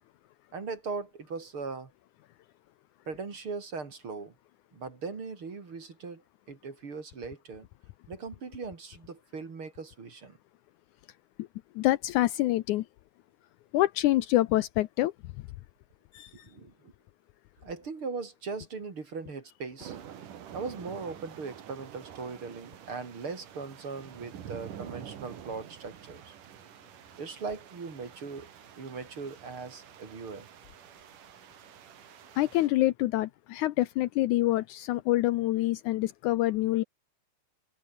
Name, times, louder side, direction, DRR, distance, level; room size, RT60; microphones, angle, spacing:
voice 1, 0.5-1.9 3.1-4.3 4.7-6.2 6.5-7.7 8.1-10.4 16.4-16.9 17.6-20.0 20.5-26.3 27.2-28.5 28.8-30.5, right 4 dB, 40° right, 3.7 m, -39 dB
voice 2, 11.8-12.9 13.7-15.1 16.1-16.3 32.4-36.8, left 16 dB, 75° left, 2.0 m, -26 dB
sound 1, 19.8-32.7, right 9 dB, 75° right, 3.6 m, -48 dB
omnidirectional pair, 3.8 m